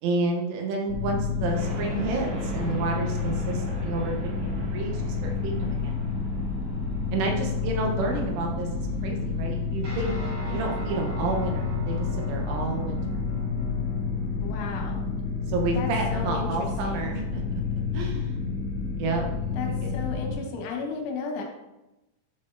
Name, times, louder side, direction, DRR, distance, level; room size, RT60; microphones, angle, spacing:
voice 1, 0.0-4.1 4.4-5.9 7.1-8.7 9.0-10.1 10.5-13.0 15.5-17.4 17.9-18.5 19.0-19.3 19.6-20.0, right 3 dB, 80° right, 1 dB, 3.2 m, -30 dB
sound 1, 0.9-20.4, left 4 dB, 60° left, 2.6 m, -30 dB
sound 2, 1.5-18.2, right 1 dB, 65° right, 3.2 m, -43 dB
Guitar, 9.8-19.2, left 1 dB, 45° right, 2.7 m, -40 dB
voice 2, 10.4-10.8 14.4-15.1 15.7-17.1 19.5-21.4, left 5 dB, 80° left, 1 dB, 3.1 m, -35 dB
10.5 x 4.1 x 2.5 m, 0.99 s
omnidirectional pair, 5.8 m